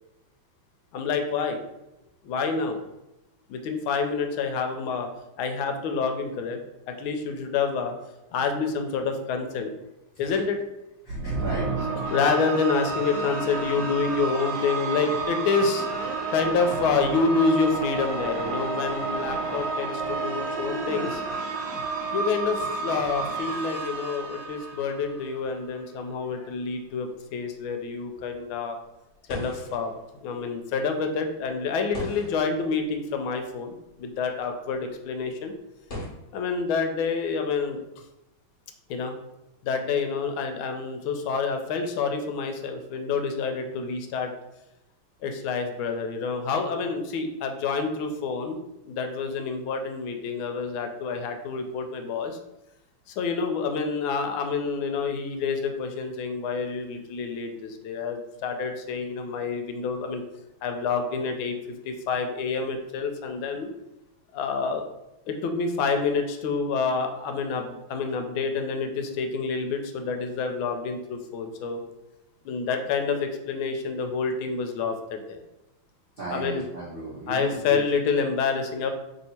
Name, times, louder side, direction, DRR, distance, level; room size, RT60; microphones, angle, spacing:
voice 1, 0.9-1.6 2.2-2.8 3.5-5.1 5.4-6.6 6.9-7.9 8.3-9.7 10.2-10.6 12.1-15.8 16.3-21.2 22.1-28.8 29.3-29.9 30.2-35.5 36.3-37.8 38.9-39.1 39.6-44.3 45.2-48.6 48.9-52.4 53.2-60.2 60.6-61.6 61.8-63.7 64.3-64.8 65.3-71.8 72.4-75.4 76.3-76.6 77.3-78.9, left 5 dB, 80° left, 5 dB, 1.3 m, -28 dB
voice 2, 11.0-12.0 76.2-77.8, right 2 dB, 55° right, -8 dB, 0.6 m, -35 dB
sound 1, 11.1-25.5, right 3 dB, 85° right, 1.4 m, -31 dB
sound 2, 24.6-36.1, left 1 dB, 40° left, 1.0 m, -44 dB
3.3 x 2.7 x 4.1 m, 0.94 s
omnidirectional pair, 2.2 m